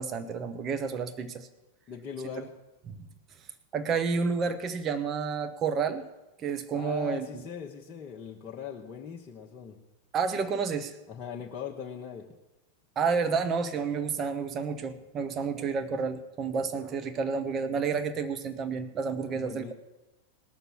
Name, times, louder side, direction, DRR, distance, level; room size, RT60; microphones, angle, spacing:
voice 1, 0.0-1.5 2.9-3.1 3.7-6.1 6.4-7.4 10.1-10.9 13.0-19.7, right 5 dB, 30° right, 8 dB, 1.1 m, -30 dB
voice 2, 1.9-2.5 6.7-9.8 11.1-12.2 19.3-19.7, left 7 dB, 30° left, -2 dB, 1.2 m, -40 dB
19.0 x 6.8 x 6.2 m, 1.0 s
figure-of-eight pair, 90°, 0 cm